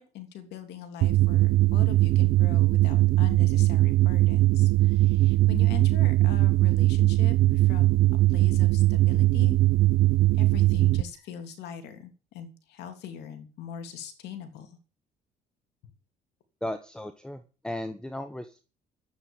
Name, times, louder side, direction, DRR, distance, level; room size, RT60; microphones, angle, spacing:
voice 1, 0.0-8.0 8.3-9.6 10.4-14.8, left 8 dB, 80° left, 7 dB, 3.2 m, -41 dB
sound 1, 1.0-11.0, right 17 dB, 70° right, 0.8 m, -21 dB
voice 2, 16.6-18.7, left 1 dB, 5° left, 10 dB, 1.1 m, -36 dB
12.5 x 9.8 x 7.3 m, 0.36 s
cardioid pair, 110°, 17 cm